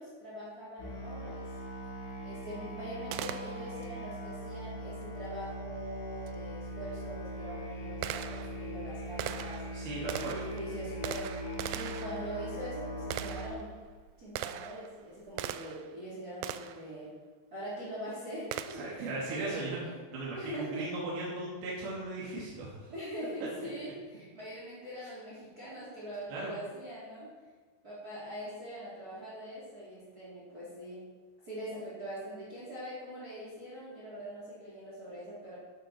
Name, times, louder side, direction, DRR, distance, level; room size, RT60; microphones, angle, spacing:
voice 1, 0.0-1.5 2.2-13.8 14.2-17.1 17.5-19.9 20.2-20.9 22.9-27.3 27.8-31.1 31.4-35.6, right 1 dB, 25° right, -7 dB, 3.6 m, -43 dB
Musical instrument, 0.8-13.5, equal, 55° left, 4.0 m, -41 dB
Gunshot gunfire, 3.1-3.9 6.3-6.4 7.1-15.9 16.4-16.9 18.5-19.0, right 11 dB, 85° right, 2.1 m, -41 dB
voice 2, 9.7-10.4 18.7-19.8 20.1-22.7 26.3-26.5, right 2 dB, 65° right, -6 dB, 4.2 m, -37 dB
13.5 x 12.5 x 4.4 m, 1.4 s
omnidirectional pair, 4.9 m